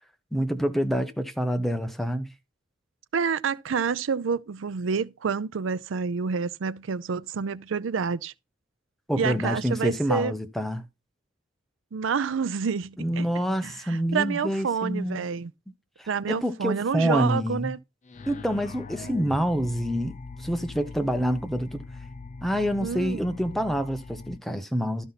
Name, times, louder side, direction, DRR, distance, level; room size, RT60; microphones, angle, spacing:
voice 1, 0.3-2.3 9.1-10.8 13.0-15.3 16.0-17.7 18.3-21.8 22.4-25.0, equal, ahead, 0.9 m, -27 dB
voice 2, 3.1-8.3 9.1-10.3 11.9-13.3 13.6-15.5 16.1-17.8 22.8-23.4, right 5 dB, 85° right, 0.5 m, -28 dB
sound 1, 18.0-24.4, left 3 dB, 40° left, 0.5 m, -41 dB
12.5 x 5.5 x 4.1 m
head